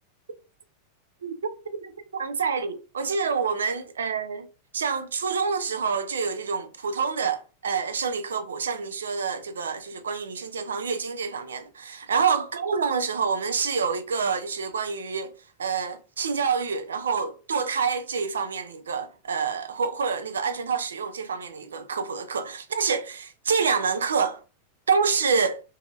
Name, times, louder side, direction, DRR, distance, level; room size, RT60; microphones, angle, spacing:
voice 1, 1.2-4.5 4.7-15.3 15.6-24.4 24.9-25.6, right 5 dB, 70° right, 0.4 m, -27 dB
2.7 x 2.6 x 2.3 m
figure-of-eight pair, 90°, 0 cm